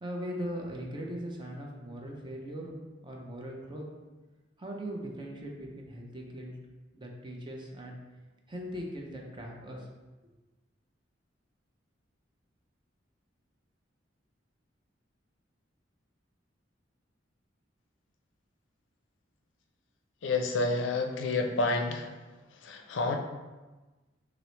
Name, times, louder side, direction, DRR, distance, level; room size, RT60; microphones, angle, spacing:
voice 1, 0.0-2.8 3.0-3.8 4.6-6.6 6.9-8.0 8.5-9.9, equal, 25° right, 0 dB, 0.6 m, -39 dB
voice 2, 20.2-22.1 22.6-23.2, left 3 dB, 75° left, 3 dB, 0.5 m, -29 dB
5.8 x 2.0 x 3.1 m, 1.2 s
head